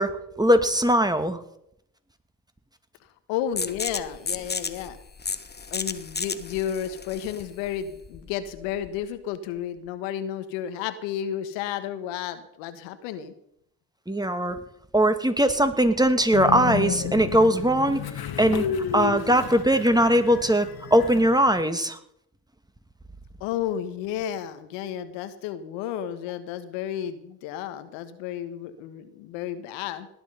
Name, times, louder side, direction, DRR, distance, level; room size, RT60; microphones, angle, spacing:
voice 1, 0.0-1.4 14.1-14.6 14.9-18.0 18.4-18.7 18.9-22.0, right 1 dB, 10° right, 9 dB, 2.3 m, -20 dB
voice 2, 3.3-5.0 5.7-13.3 23.4-30.1, left 10 dB, 80° left, 11 dB, 1.4 m, -32 dB
sound 1, 3.6-9.0, left 4 dB, 20° left, 1.2 m, -34 dB
Train, 16.3-21.6, left 8 dB, 55° left, 1.9 m, -32 dB
18.5 x 10.5 x 5.6 m, 0.76 s
hypercardioid pair, 50°, 44 cm